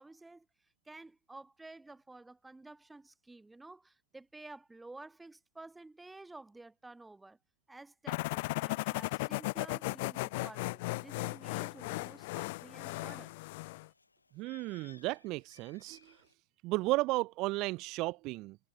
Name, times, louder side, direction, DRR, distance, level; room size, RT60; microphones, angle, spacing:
voice 1, 0.0-7.4 7.7-13.4, right 2 dB, 5° right, 2.7 m, -52 dB
sound 1, 8.1-13.9, left 23 dB, 50° left, 0.5 m, -36 dB
Bird, 11.3-16.3, left 3 dB, 80° left, 4.6 m, -63 dB
voice 2, 14.3-16.2 16.6-18.6, right 21 dB, 40° right, 0.6 m, -34 dB
figure-of-eight pair, 90°, 0 cm